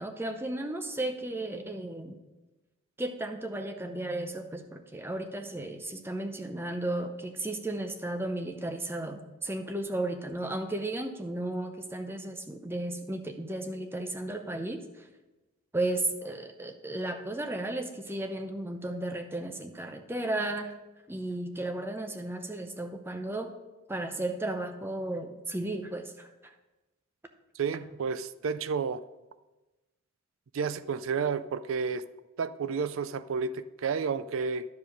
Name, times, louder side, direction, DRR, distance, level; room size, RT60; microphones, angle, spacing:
voice 1, 0.0-2.2 3.0-14.8 15.7-20.7 21.1-23.5 23.9-26.3, right 1 dB, 10° right, 6 dB, 0.6 m, -34 dB
voice 2, 27.6-29.0 30.5-32.1 32.4-34.7, right 5 dB, 70° right, 14 dB, 0.4 m, -31 dB
11.5 x 5.0 x 5.2 m, 1.1 s
head